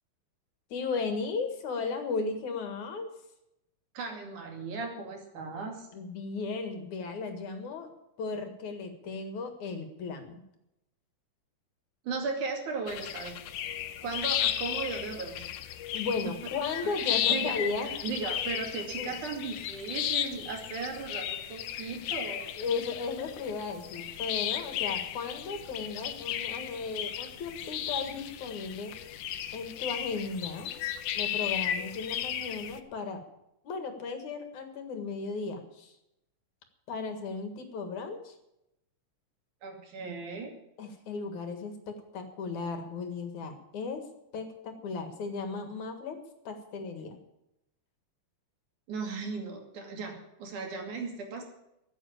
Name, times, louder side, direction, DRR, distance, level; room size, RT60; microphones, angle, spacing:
voice 1, 0.7-3.1 5.9-7.9 8.2-10.4 15.9-17.9 19.0-19.1 22.6-28.9 29.5-30.7 31.1-33.2 33.6-35.9 36.9-38.3 40.8-44.0 44.3-46.2 46.4-47.2, left 4 dB, 70° left, 7 dB, 3.1 m, -35 dB
voice 2, 3.9-5.9 12.0-13.4 14.0-15.5 17.0-17.6 17.8-22.5 39.6-40.5 48.9-51.4, right 4 dB, 70° right, 2 dB, 4.0 m, -36 dB
sound 1, 12.9-32.8, left 11 dB, 90° left, 2.4 m, -34 dB
14.0 x 8.4 x 8.7 m, 0.84 s
omnidirectional pair, 3.6 m